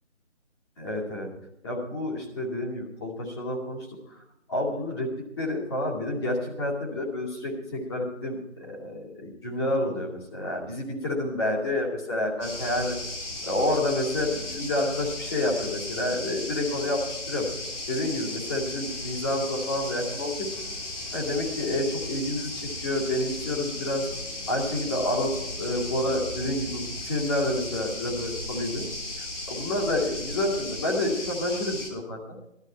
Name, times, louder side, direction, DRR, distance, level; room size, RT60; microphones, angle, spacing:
voice 1, 0.8-1.3 1.6-4.2 4.5-5.1 5.4-12.9 13.4-17.5 17.9-20.5 21.1-24.0 24.5-28.9 29.2-32.4, left 1 dB, 20° left, -3 dB, 2.4 m, -29 dB
sound 1, 12.4-31.9, left 2 dB, 70° left, 4.0 m, -36 dB
17.5 x 12.0 x 4.4 m, 0.84 s
figure-of-eight pair, 165°, 37 cm